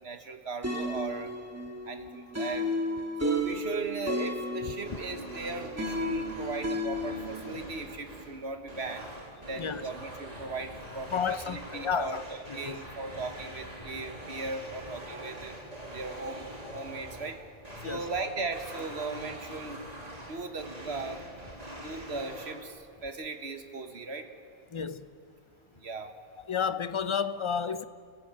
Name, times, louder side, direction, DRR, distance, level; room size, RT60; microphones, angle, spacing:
voice 1, 0.0-1.3 1.8-2.7 3.2-9.1 9.5-15.5 15.9-17.4 17.8-19.8 20.3-21.2 21.8-24.3 25.7-26.1, right 3 dB, 70° right, 1.8 m, -38 dB
sound 1, 0.6-7.5, equal, 15° right, 1.9 m, -33 dB
sound 2, 4.7-22.6, equal, 35° right, 2.5 m, -44 dB
voice 2, 11.1-12.2 12.5-12.8 17.8-18.1 24.7-25.0 26.5-27.8, left 6 dB, 35° left, 0.6 m, -31 dB
30.0 x 15.0 x 8.8 m
omnidirectional pair, 1.1 m